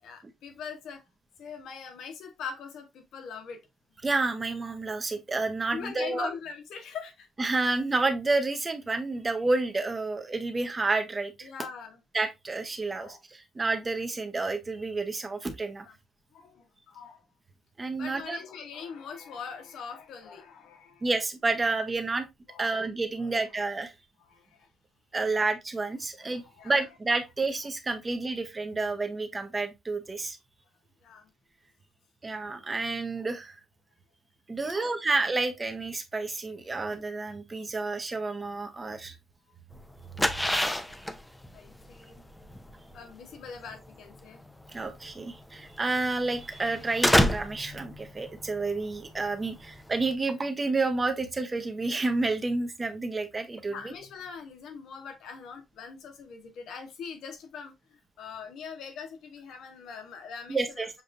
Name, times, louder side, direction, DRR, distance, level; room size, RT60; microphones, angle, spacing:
voice 1, 0.0-1.0 1.4-3.6 5.7-7.3 11.4-12.0 12.9-13.2 15.9-16.0 16.3-17.2 18.0-21.1 21.6-21.7 22.1-22.9 23.2-23.3 24.2-24.7 25.3-25.4 26.2-26.8 31.0-31.3 34.6-34.9 39.5-39.6 41.5-42.2 42.9-44.4 53.7-60.6, left 6 dB, 75° left, 1.1 m, -42 dB
voice 2, 4.0-6.3 7.4-11.5 12.1-15.9 17.8-18.4 21.0-22.3 22.6-23.9 25.1-30.4 32.2-33.6 34.5-39.1 44.7-53.9 60.5-60.9, right 3 dB, 25° right, 0.8 m, -30 dB
sound 1, 39.7-50.1, left 1 dB, 5° left, 0.6 m, -30 dB
6.8 x 2.5 x 2.5 m
cardioid pair, 90°, 0 cm